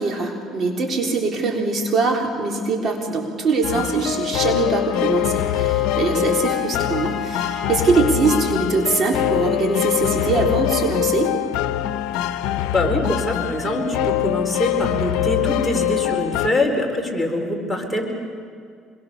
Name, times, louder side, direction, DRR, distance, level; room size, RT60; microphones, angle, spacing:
voice 1, 0.0-11.3, right 3 dB, 45° right, 1 dB, 3.8 m, -22 dB
sound 1, 3.6-16.5, left 13 dB, 80° left, 0.8 m, -23 dB
Wind instrument woodwind instrument, 4.4-10.7, left 8 dB, 40° left, 1.6 m, -33 dB
voice 2, 12.7-18.0, left 1 dB, 5° left, 0 dB, 4.4 m, -23 dB
26.0 x 22.5 x 6.9 m, 2.2 s
cardioid pair, 100°, 0 cm